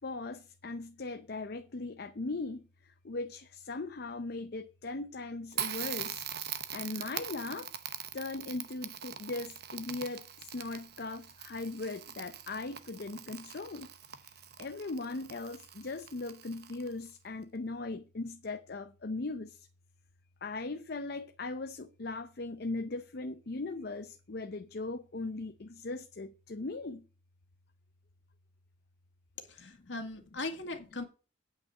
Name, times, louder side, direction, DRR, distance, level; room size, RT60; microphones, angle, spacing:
voice 1, 0.0-6.2 6.7-7.7 8.1-19.7 20.4-27.1 29.6-29.9, left 3 dB, 55° left, 0.6 m, -39 dB
Crackle, 5.5-17.1, right 9 dB, 55° right, 0.8 m, -42 dB
voice 2, 29.4-31.0, left 2 dB, 70° left, 2.0 m, -39 dB
8.7 x 5.4 x 7.8 m
head